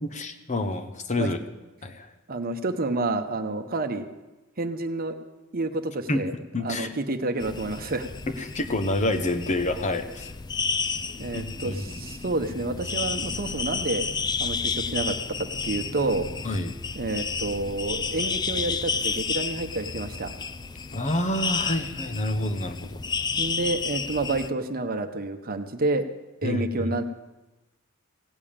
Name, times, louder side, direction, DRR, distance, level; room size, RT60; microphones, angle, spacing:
voice 1, 0.0-1.4 1.8-2.1 6.1-6.3 6.5-6.9 8.3-10.3 11.3-11.8 16.4-16.7 20.9-23.0 26.4-26.9, left 1 dB, 35° left, 8 dB, 1.0 m, -28 dB
voice 2, 2.3-4.1 4.6-5.2 5.5-6.3 6.6-8.1 11.2-14.0 14.4-16.3 17.0-20.3 23.4-26.0 26.4-27.0, right 2 dB, 45° right, 8 dB, 1.0 m, -29 dB
sound 1, 7.4-24.5, left 5 dB, 20° left, 0.4 m, -31 dB
16.5 x 7.1 x 8.8 m, 1.1 s
head